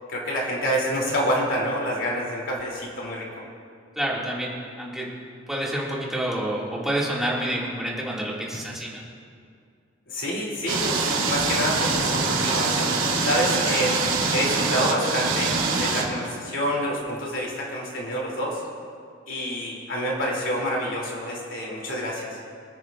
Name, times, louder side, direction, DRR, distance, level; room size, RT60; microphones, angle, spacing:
voice 1, 0.1-3.3 10.1-14.0 14.3-18.6 19.3-22.4, equal, 70° left, -3 dB, 2.9 m, -27 dB
voice 2, 4.0-5.1 5.5-9.0, right 1 dB, ahead, -6 dB, 2.1 m, -28 dB
sound 1, 10.7-16.0, right 4 dB, 75° right, 2.3 m, -24 dB
25.5 x 9.8 x 2.5 m, 2.3 s
head